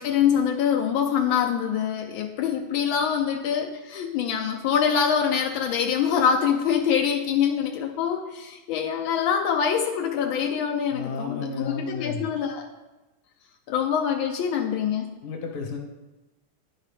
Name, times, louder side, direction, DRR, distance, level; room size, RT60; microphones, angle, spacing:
voice 1, 0.0-12.7 13.7-15.1, left 7 dB, 85° left, 3 dB, 1.4 m, -24 dB
voice 2, 10.9-12.3 15.2-15.8, left 4 dB, 60° left, 1 dB, 1.6 m, -32 dB
11.0 x 4.6 x 3.4 m, 1.1 s
omnidirectional pair, 2.1 m